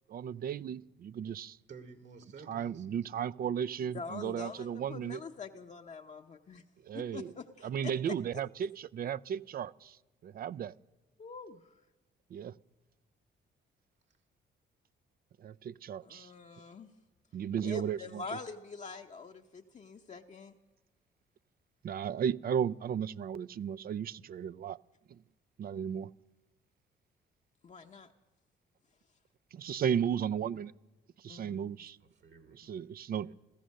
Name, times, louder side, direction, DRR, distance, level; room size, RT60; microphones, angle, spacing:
voice 1, 0.1-1.6 2.5-5.2 6.8-7.3 7.6-10.0 10.2-10.7 12.3-12.5 15.4-16.3 17.3-18.2 21.8-24.8 25.1-25.2 25.6-26.1 29.5-30.7 31.2-32.0 32.6-33.3, right 8 dB, 50° right, 0.4 m, -35 dB
voice 2, 1.7-2.9 32.0-32.6 33.2-33.3, right 5 dB, 65° right, 2.1 m, -52 dB
voice 3, 3.9-6.6 6.9-8.4 11.2-11.7 16.0-16.9 17.6-20.5 27.6-28.1 31.3-31.7, left 4 dB, 35° left, 0.8 m, -45 dB
15.5 x 14.0 x 6.4 m
cardioid pair, 90°, 20 cm